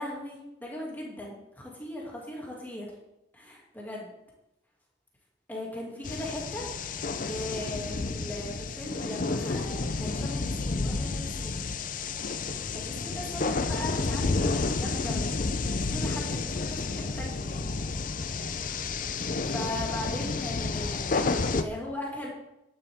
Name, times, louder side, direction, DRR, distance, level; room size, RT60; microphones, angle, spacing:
voice 1, 0.0-2.9 3.3-4.1 5.5-11.6 12.7-17.7 19.1-22.3, left 1 dB, 10° left, -3 dB, 2.6 m, -39 dB
sound 1, 6.0-21.6, left 3 dB, 45° left, 0.6 m, -30 dB
11.5 x 10.0 x 3.7 m, 0.90 s
head